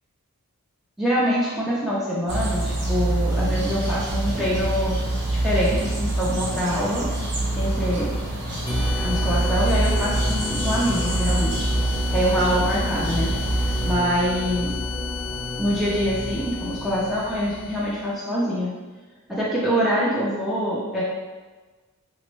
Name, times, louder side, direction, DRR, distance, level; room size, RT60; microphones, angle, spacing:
voice 1, 1.0-5.0 5.3-7.1 7.6-8.1 9.0-11.7 12.1-14.7 15.6-18.7 19.3-21.0, equal, ahead, -8 dB, 0.3 m, -25 dB
sound 1, 2.3-13.9, right 2 dB, 50° right, 0.6 m, -25 dB
sound 2, 8.7-18.0, left 3 dB, 20° left, 0.7 m, -30 dB
3.3 x 2.1 x 3.0 m, 1.3 s
head